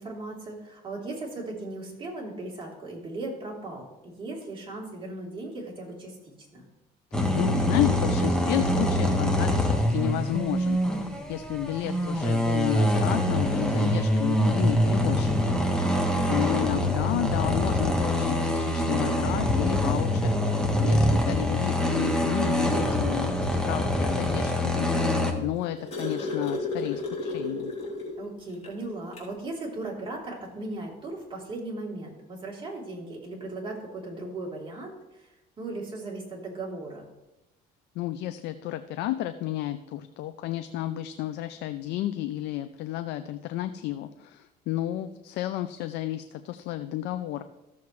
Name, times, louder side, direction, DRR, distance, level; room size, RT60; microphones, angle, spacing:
voice 1, 0.0-6.7 15.8-16.5 28.2-35.3 35.6-37.1, right 2 dB, 30° right, -3 dB, 3.4 m, -37 dB
sound 1, 7.1-25.3, left 1 dB, 5° left, 1.4 m, -25 dB
voice 2, 7.3-15.6 16.3-27.7 38.0-47.4, left 13 dB, 85° left, 10 dB, 0.5 m, -32 dB
sound 2, 25.3-28.2 28.6-28.7 29.1-29.3 30.5-30.6, left 3 dB, 40° left, 3.2 m, -32 dB
14.5 x 7.0 x 3.2 m, 0.97 s
cardioid pair, 110°, 17 cm